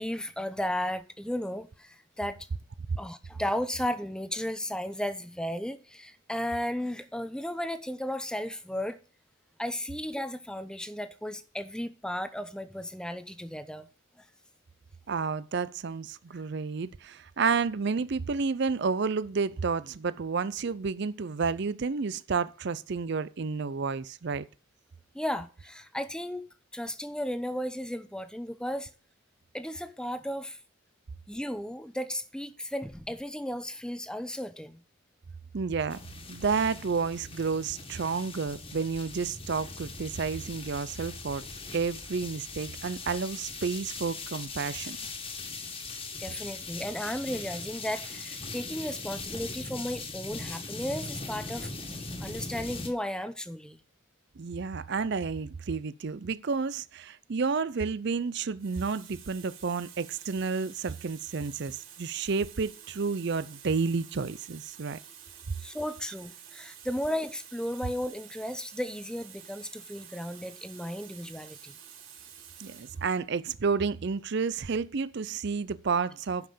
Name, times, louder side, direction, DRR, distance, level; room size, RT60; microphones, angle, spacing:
voice 1, 0.0-2.4 3.0-9.0 9.6-13.9 16.3-16.4 25.1-26.4 26.7-28.9 29.5-30.6 31.3-34.8 46.2-51.7 52.2-53.8 65.6-71.7, equal, 5° left, 0.7 m, -34 dB
voice 2, 15.1-24.5 35.5-36.0 36.3-41.4 41.7-45.0 54.4-65.0 72.6-76.5, right 5 dB, 50° right, 0.5 m, -30 dB
sound 1, 35.9-52.9, left 3 dB, 25° left, 1.8 m, -40 dB
Water tap faucet, 58.0-58.1 58.6-73.1 74.0-74.2, right 9 dB, 70° right, 4.2 m, -50 dB
10.5 x 5.7 x 6.6 m
head